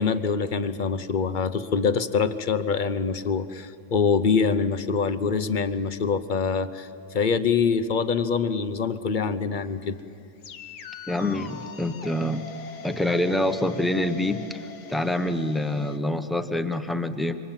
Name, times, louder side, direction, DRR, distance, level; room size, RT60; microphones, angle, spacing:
voice 1, 0.0-9.9, left 5 dB, 45° left, 12 dB, 0.6 m, -25 dB
sound 1, 9.6-16.0, left 4 dB, 85° left, 1.8 m, -42 dB
voice 2, 11.1-12.5 12.8-14.6 14.9-17.3, left 1 dB, ahead, 8 dB, 0.5 m, -26 dB
27.5 x 25.0 x 7.4 m, 2.5 s
omnidirectional pair, 1.7 m